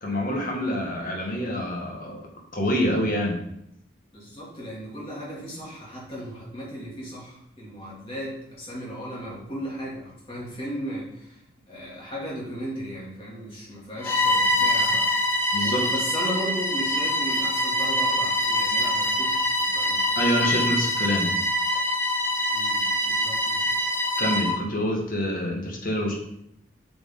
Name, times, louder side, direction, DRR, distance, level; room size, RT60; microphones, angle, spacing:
voice 1, 0.0-2.2 2.5-3.4 15.5-15.8 20.2-21.3 24.2-26.1, equal, 45° left, 0 dB, 1.7 m, -26 dB
voice 2, 4.1-11.4 11.7-15.1 15.6-20.2 22.5-23.7, equal, 30° left, -6 dB, 2.8 m, -36 dB
Bowed string instrument, 14.0-24.6, left 1 dB, 10° left, 0.8 m, -24 dB
8.5 x 5.0 x 3.9 m, 0.77 s
head